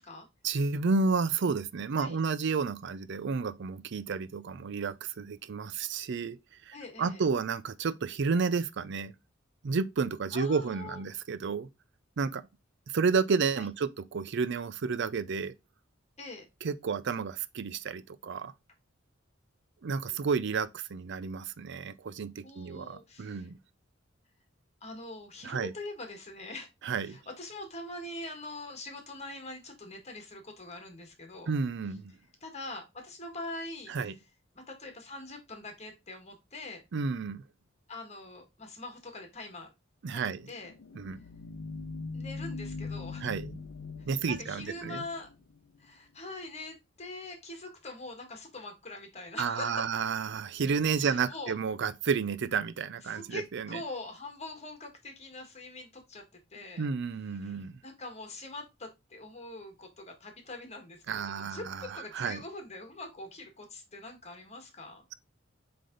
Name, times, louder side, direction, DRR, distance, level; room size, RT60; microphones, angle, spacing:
voice 1, 0.4-6.4 6.7-9.1 9.6-11.7 12.2-12.4 12.9-15.5 16.6-18.5 19.8-23.6 25.4-25.7 26.8-27.2 31.5-32.1 33.9-34.1 36.9-37.4 40.0-40.5 40.9-41.2 43.2-43.6 44.1-45.0 49.4-53.8 56.8-57.8 61.1-62.4, right 5 dB, 60° right, 0.5 m, -31 dB
voice 2, 6.7-7.2 10.3-11.0 13.6-13.7 16.2-16.5 22.4-23.5 24.8-26.7 27.1-31.5 32.4-33.9 34.7-36.8 37.9-39.7 40.1-40.7 42.1-43.3 44.3-45.3 45.8-49.9 51.0-51.5 53.0-56.2 56.5-56.9 57.4-65.0, left 2 dB, 35° left, 1.7 m, -43 dB
sound 1, 40.4-45.9, left 4 dB, 80° left, 0.7 m, -41 dB
7.6 x 3.4 x 3.9 m
head